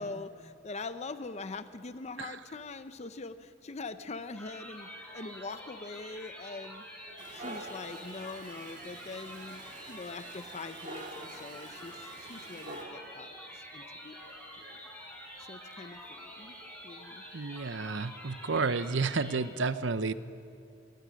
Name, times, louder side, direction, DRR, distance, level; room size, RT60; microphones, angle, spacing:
voice 1, 0.0-6.9 7.3-9.6 9.9-14.2 14.6-14.8 15.5-16.5 16.8-17.2, left 3 dB, 35° left, 11 dB, 0.6 m, -43 dB
sound 1, 4.3-19.4, equal, 10° left, 4.6 m, -47 dB
Dog, 7.2-12.8, right 2 dB, 40° right, 2.3 m, -47 dB
voice 2, 17.3-20.1, right 4 dB, 75° right, 13 dB, 0.8 m, -31 dB
26.0 x 18.5 x 6.4 m, 2.5 s
head